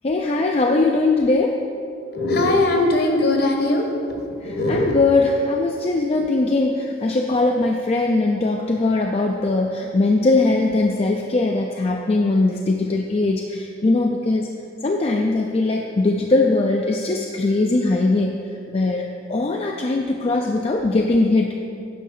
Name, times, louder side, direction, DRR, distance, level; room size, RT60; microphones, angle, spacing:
voice 1, 0.0-1.6 4.4-14.5 14.8-18.4 18.7-21.5, left 2 dB, 30° left, 2 dB, 0.4 m, -20 dB
voice 2, 2.1-5.0, left 2 dB, 55° left, 2 dB, 1.2 m, -20 dB
9.4 x 5.7 x 5.4 m, 2.5 s
head